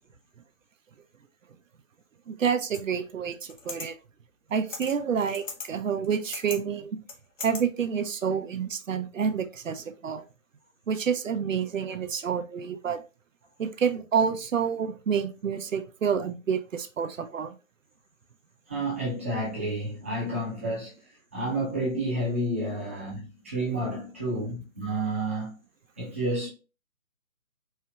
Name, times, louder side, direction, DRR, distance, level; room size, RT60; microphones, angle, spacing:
voice 1, 2.3-4.0 4.5-7.0 7.4-10.2 10.9-13.0 13.6-17.5, right 7 dB, 70° right, 0.6 m, -28 dB
sound 1, 2.7-2.8 3.5-3.9 4.7-5.0 5.3-5.7 6.0-6.6 7.1-7.6, left 4 dB, 65° left, 0.9 m, -38 dB
voice 2, 18.7-21.0 21.3-25.5 26.0-26.5, right 1 dB, 10° right, 0.6 m, -30 dB
4.4 x 2.7 x 2.2 m
figure-of-eight pair, 145°, 41 cm